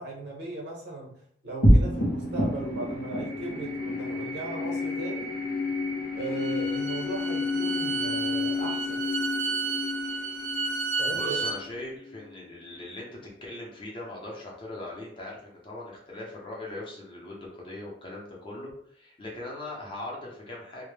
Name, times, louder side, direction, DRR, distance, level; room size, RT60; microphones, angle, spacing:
voice 1, 0.0-5.4 6.1-9.1 11.0-11.4, right 2 dB, 70° right, -2 dB, 0.8 m, -37 dB
sound 1, 1.6-12.3, left 1 dB, 85° left, 0.7 m, -28 dB
Bowed string instrument, 6.2-11.6, right 4 dB, 50° right, 0.6 m, -32 dB
voice 2, 11.1-20.8, left 2 dB, 30° left, -3 dB, 0.6 m, -40 dB
2.1 x 2.0 x 3.1 m, 0.64 s
head